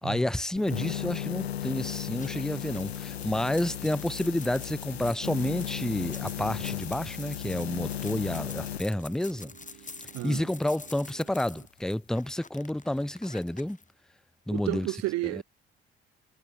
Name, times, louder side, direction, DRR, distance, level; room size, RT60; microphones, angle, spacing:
voice 1, 0.0-9.5 10.2-13.8 14.5-14.9 15.3-15.4, left 1 dB, ahead, 0.8 m, -30 dB
sound 1, 0.6-8.8, left 11 dB, 90° left, 0.5 m, -35 dB
sound 2, 1.7-11.7, right 16 dB, 80° right, 2.3 m, -54 dB
sound 3, 2.1-13.8, left 4 dB, 25° left, 6.6 m, -48 dB
voice 2, 10.1-10.5 14.5-15.4, right 19 dB, 55° right, 0.8 m, -32 dB
figure-of-eight pair, 55°, 31 cm